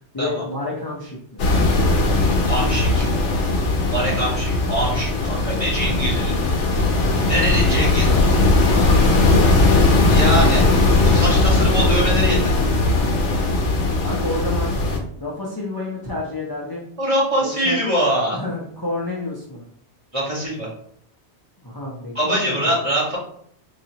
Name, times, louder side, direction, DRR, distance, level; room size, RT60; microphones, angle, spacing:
voice 1, 0.1-1.4 3.9-4.2 7.8-8.3 8.7-9.9 13.2-13.6 14.0-14.8 15.2-16.9 17.4-17.8 18.3-19.6 21.6-22.8, left 2 dB, 25° left, -5 dB, 0.6 m, -30 dB
sound 1, 1.4-15.0, left 2 dB, 85° left, 1.0 m, -18 dB
voice 2, 2.4-3.1 3.9-6.3 7.3-8.1 10.1-10.7 11.0-12.5 17.0-18.4 20.1-20.7 22.1-23.2, right 1 dB, 30° right, -6 dB, 1.5 m, -23 dB
3.9 x 3.0 x 2.8 m, 0.65 s
omnidirectional pair, 1.2 m